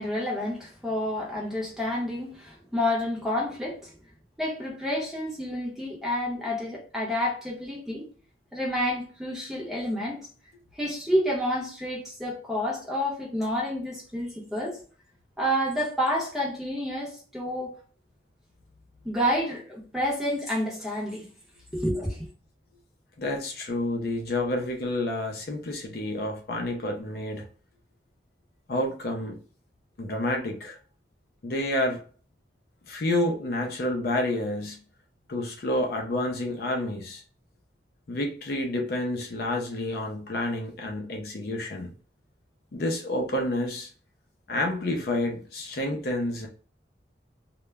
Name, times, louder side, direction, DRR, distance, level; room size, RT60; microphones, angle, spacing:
voice 1, 0.0-4.0 4.4-8.1 8.5-10.2 10.7-14.8 15.4-17.7 19.0-21.3 21.7-22.3, equal, ahead, 0.7 m, -29 dB
voice 2, 23.2-27.4 28.7-29.4 30.0-30.8 31.4-32.0 32.9-34.8 35.3-37.2 38.1-41.9 42.7-43.9 44.5-46.5, left 1 dB, 55° left, 0.4 m, -29 dB
2.1 x 2.0 x 3.3 m
head